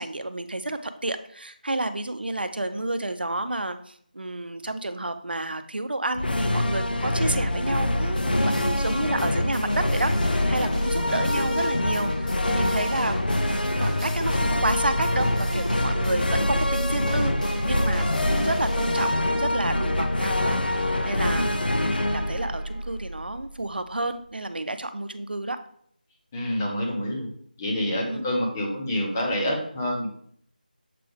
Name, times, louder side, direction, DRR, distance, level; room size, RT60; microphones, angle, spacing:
voice 1, 0.0-25.6 28.0-28.2, right 2 dB, 85° right, 9 dB, 0.7 m, -30 dB
sound 1, 6.1-23.6, left 1 dB, 75° left, 0.7 m, -25 dB
sound 2, 8.2-19.1, left 1 dB, 60° left, 2.3 m, -35 dB
voice 2, 8.3-8.6 11.1-11.2 21.3-21.6 26.3-27.3 27.6-30.1, equal, 15° left, -3 dB, 0.8 m, -28 dB
7.5 x 3.4 x 3.6 m, 0.62 s
figure-of-eight pair, 170°, 5 cm